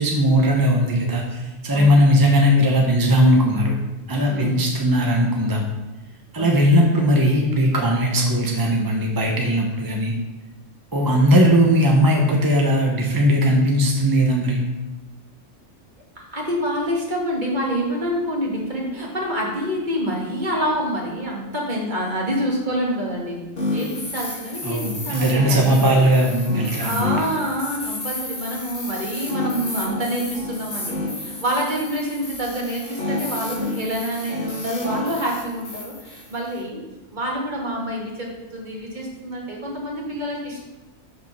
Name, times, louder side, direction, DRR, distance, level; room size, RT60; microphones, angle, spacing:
voice 1, 0.0-3.8 4.1-5.6 6.3-10.1 10.9-14.6 24.6-27.1, equal, 20° right, 0 dB, 0.8 m, -18 dB
voice 2, 1.7-2.1 4.3-4.6 6.4-6.9 16.2-23.4 23.7-25.9 26.8-36.8 37.1-40.6, equal, 40° right, -3 dB, 1.9 m, -27 dB
sound 1, 23.6-36.6, left 2 dB, 50° left, 1.9 m, -31 dB
6.4 x 5.2 x 6.0 m, 1.1 s
omnidirectional pair, 1.3 m